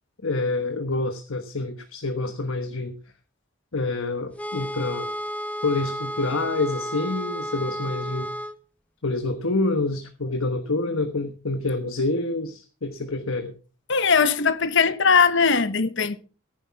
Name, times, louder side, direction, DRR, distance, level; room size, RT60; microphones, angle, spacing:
voice 1, 0.2-3.0 3.7-5.1 5.6-8.3 9.0-13.5, left 2 dB, 70° left, 1.2 m, -27 dB
sound 1, 4.4-8.6, equal, 5° left, 0.7 m, -32 dB
voice 2, 13.9-16.2, left 5 dB, 55° left, 0.9 m, -20 dB
15.0 x 10.0 x 4.7 m
head